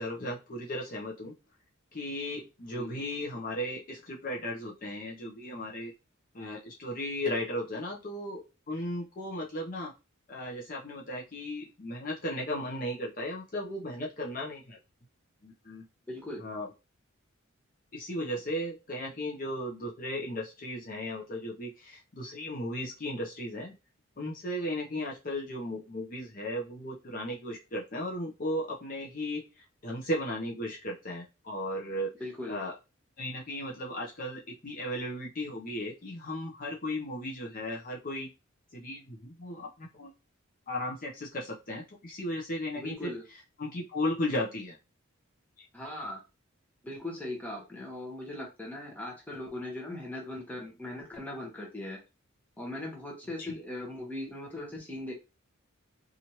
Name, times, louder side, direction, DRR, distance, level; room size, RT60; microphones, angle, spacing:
voice 1, 0.0-1.3 1.9-5.9 6.3-9.9 10.3-14.8 15.4-15.8 16.4-16.7 17.9-23.7 24.2-32.1 32.5-32.7 33.2-38.3 38.7-40.1 40.7-43.1 43.6-44.8 45.6-45.7 53.5-53.6, left 1 dB, 40° left, -2 dB, 0.7 m, -36 dB
voice 2, 16.1-16.4 32.2-32.6 42.8-43.2 45.7-46.2 46.8-52.0 52.6-55.1, left 1 dB, 10° left, -1 dB, 0.9 m, -39 dB
3.0 x 2.5 x 2.8 m, 0.28 s
head